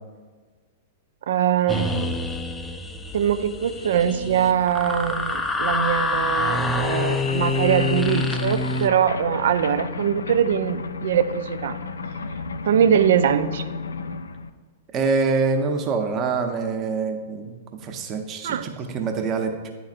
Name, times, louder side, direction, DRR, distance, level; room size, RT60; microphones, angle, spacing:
voice 1, 1.3-2.2 3.1-11.8 12.7-13.6 18.4-18.7, right 9 dB, 65° right, 11 dB, 0.3 m, -22 dB
sound 1, 1.7-8.9, left 2 dB, 10° left, 0.4 m, -26 dB
sound 2, 3.4-3.5 3.6-14.5, left 4 dB, 80° left, 0.3 m, -34 dB
voice 2, 14.9-19.7, right 4 dB, 30° right, 4 dB, 0.8 m, -25 dB
10.0 x 4.0 x 2.5 m, 1.4 s
hypercardioid pair, 105°, 0 cm